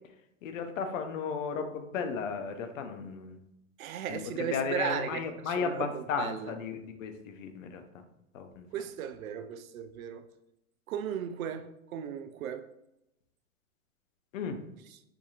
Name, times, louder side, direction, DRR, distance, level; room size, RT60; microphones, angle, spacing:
voice 1, 0.4-3.4 4.1-8.0 8.3-8.7 14.3-14.6, left 6 dB, 70° left, 0.7 m, -35 dB
voice 2, 3.8-5.2 5.6-6.5 8.7-10.2 10.9-12.7, right 9 dB, 80° right, 0.5 m, -36 dB
4.8 x 2.7 x 2.4 m
hypercardioid pair, 130°, 41 cm